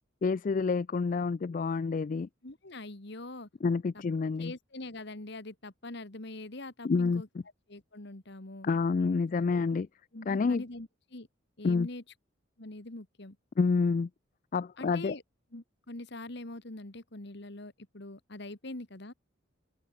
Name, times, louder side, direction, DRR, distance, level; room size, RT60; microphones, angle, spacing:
voice 1, 0.2-2.3 3.6-4.5 6.8-7.2 8.6-9.9 10.3-10.6 11.6-11.9 13.6-14.1 14.5-15.1, left 4 dB, 40° left, 0.3 m, -28 dB
voice 2, 2.4-3.5 3.9-4.0 4.4-7.3 7.7-8.7 9.5-9.8 10.1-11.3 11.6-12.0 12.6-13.4 14.8-15.2 15.5-19.1, left 2 dB, 55° left, 1.9 m, -43 dB
head